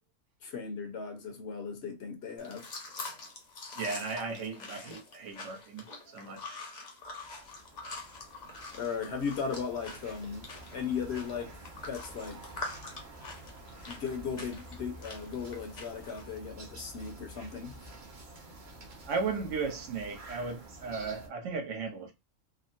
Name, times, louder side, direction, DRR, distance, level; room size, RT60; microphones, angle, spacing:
voice 1, 0.4-2.7 8.7-11.5 11.8-12.4 13.9-17.8, left 6 dB, 60° left, 0.9 m, -37 dB
sound 1, 2.4-16.4, left 3 dB, 40° left, 0.7 m, -45 dB
voice 2, 3.7-6.6 19.1-22.1, right 4 dB, 70° right, 1.1 m, -36 dB
sound 2, 7.0-21.3, right 1 dB, 45° right, 0.8 m, -49 dB
3.5 x 2.0 x 2.5 m
omnidirectional pair, 1.3 m